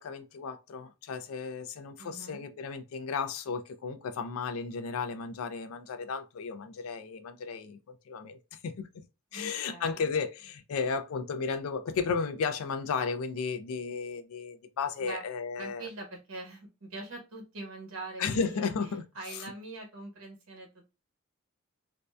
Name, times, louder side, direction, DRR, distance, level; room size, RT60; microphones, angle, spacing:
voice 1, 0.0-9.0 9.3-15.9 18.2-19.0 19.3-19.4, left 5 dB, 80° left, 0.4 m, -34 dB
voice 2, 2.0-2.4 9.3-10.1 15.0-15.2 15.6-18.7 19.1-20.9, right 2 dB, 80° right, 1.0 m, -43 dB
2.6 x 2.0 x 2.3 m
head